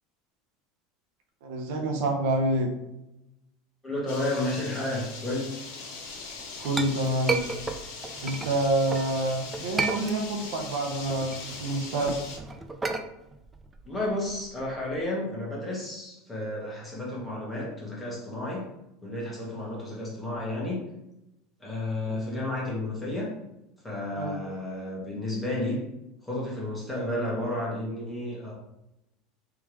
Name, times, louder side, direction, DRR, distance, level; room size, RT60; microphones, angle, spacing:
voice 1, 1.4-2.7 6.6-7.4 8.2-12.2 22.1-22.2 24.2-24.4, right 1 dB, 70° right, 2 dB, 0.8 m, -27 dB
voice 2, 3.8-5.6 13.8-18.7 19.0-20.8 21.6-23.3 23.8-25.9 26.2-28.5, left 1 dB, 5° left, -5 dB, 1.3 m, -32 dB
sound 1, 4.1-12.4, left 4 dB, 70° left, 1.3 m, -40 dB
Chink clink, 6.2-9.1 9.5-10.6 10.9-15.0, right 4 dB, 15° right, 0.3 m, -33 dB
3.7 x 3.2 x 3.1 m, 0.89 s
supercardioid pair, 145°, 0 cm